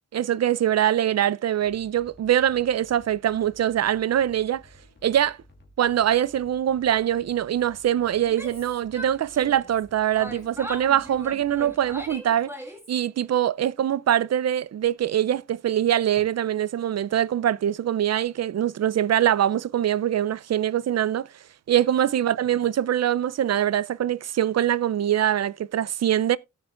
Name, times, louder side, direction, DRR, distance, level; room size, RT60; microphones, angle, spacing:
voice 1, 0.1-4.6 5.0-5.4 5.8-12.5 12.9-21.3 21.7-26.4, right 10 dB, 60° right, 0.4 m, -23 dB
sound 1, 1.6-12.1, equal, 35° left, 2.5 m, -54 dB
sound 2, 4.8-7.4 10.2-13.6 14.3-14.4 16.1-16.2, left 6 dB, 80° left, 2.3 m, -58 dB
Yell, 8.2-9.8 10.2-13.0, equal, 10° right, 1.7 m, -39 dB
17.0 x 6.5 x 2.4 m
wide cardioid pair, 140°, 30 cm